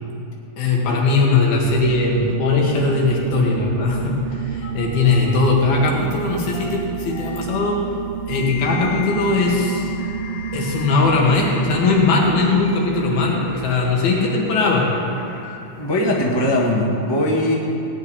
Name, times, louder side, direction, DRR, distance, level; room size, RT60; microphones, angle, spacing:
voice 1, 0.6-7.8 8.3-9.9 10.5-14.9, left 3 dB, 85° left, -2 dB, 3.9 m, -19 dB
sound 1, 1.6-13.6, right 8 dB, 90° right, 2.5 m, -30 dB
sound 2, 4.6-5.5 6.2-7.6 8.3-12.2 12.5-16.5, left 8 dB, 65° left, 2.9 m, -38 dB
voice 2, 15.8-17.5, left 1 dB, 35° left, -2 dB, 0.4 m, -20 dB
17.5 x 6.1 x 9.8 m, 2.8 s
omnidirectional pair, 4.2 m